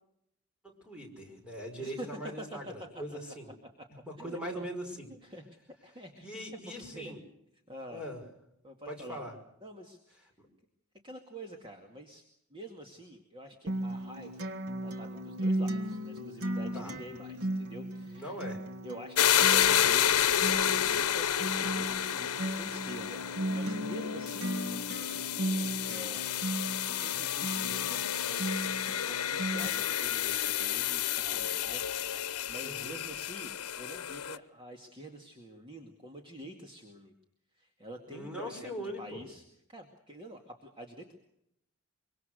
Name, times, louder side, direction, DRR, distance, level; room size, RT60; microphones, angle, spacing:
voice 1, 0.6-3.5 4.1-5.1 6.2-7.2 7.9-8.2 8.9-9.3 16.7-16.9 18.0-18.6 32.6-33.0 38.1-39.2, equal, 5° right, 1 dB, 5.6 m, -41 dB
voice 2, 1.8-2.6 3.1-3.2 3.8-3.9 4.2-4.7 5.1-5.5 5.8-7.2 7.7-8.1 8.6-9.3 9.6-10.3 11.0-14.5 14.8-18.4 18.8-23.2 23.5-24.6 25.8-26.3 26.8-37.1 37.5-41.2, right 1 dB, 20° right, 3 dB, 2.2 m, -47 dB
Acoustic guitar, 13.7-29.7, right 1 dB, 80° right, 1.7 m, -36 dB
sound 1, 19.2-34.4, left 10 dB, 90° left, 0.9 m, -30 dB
24.5 x 24.5 x 6.5 m, 0.77 s
head